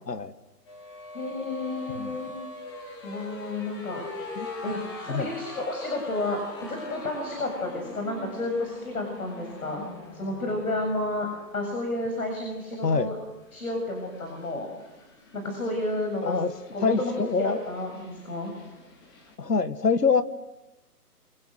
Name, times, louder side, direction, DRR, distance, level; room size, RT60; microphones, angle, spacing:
sound 1, 0.7-19.3, left 2 dB, 15° left, 2.7 m, -43 dB
voice 1, 1.1-2.3 3.0-4.0 4.6-11.3 11.5-13.2 13.5-14.7 15.3-16.4 16.7-17.1 17.4-18.5, left 2 dB, 60° left, 3 dB, 7.2 m, -31 dB
voice 2, 12.8-13.1 16.2-16.5 16.8-17.6 19.4-20.2, left 4 dB, 80° left, 12 dB, 1.9 m, -25 dB
25.5 x 25.0 x 6.5 m, 1.1 s
figure-of-eight pair, 160°, 48 cm